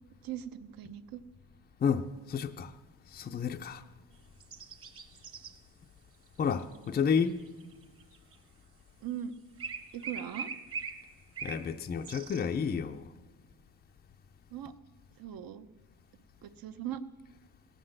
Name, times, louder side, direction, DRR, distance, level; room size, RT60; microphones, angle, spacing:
voice 1, 0.2-1.2 9.0-9.3 9.9-10.5 14.5-14.7 15.2-15.7 16.4-17.0, right 10 dB, 70° right, 0.8 m, -39 dB
voice 2, 1.8-2.7 3.1-3.8 6.4-7.4 11.4-13.1, left 6 dB, 30° left, 0.4 m, -31 dB
sound 1, 4.4-5.6 6.4-8.3 9.6-11.7 12.0-12.4, right 5 dB, 40° right, 1.1 m, -42 dB
18.0 x 7.8 x 7.6 m
wide cardioid pair, 165°, 36 cm